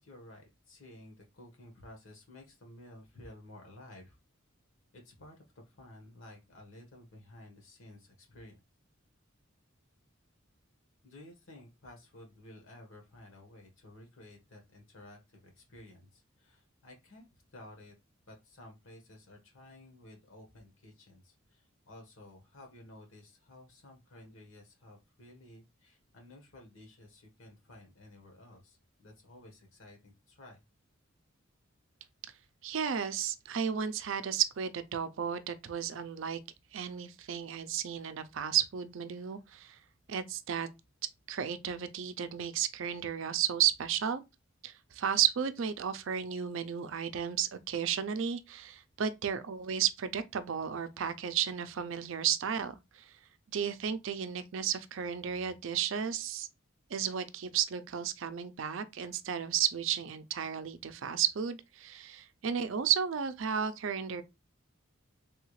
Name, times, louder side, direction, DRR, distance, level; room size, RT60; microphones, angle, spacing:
voice 1, 0.0-4.2 4.9-8.6 11.0-17.9 18.3-30.6, left 1 dB, 70° left, 1.3 m, -54 dB
voice 2, 32.6-36.4 36.7-39.8 40.1-40.7 41.3-44.2 44.6-52.8 53.5-56.5 56.9-64.2, right 8 dB, 65° right, 0.4 m, -33 dB
3.4 x 2.4 x 3.1 m
head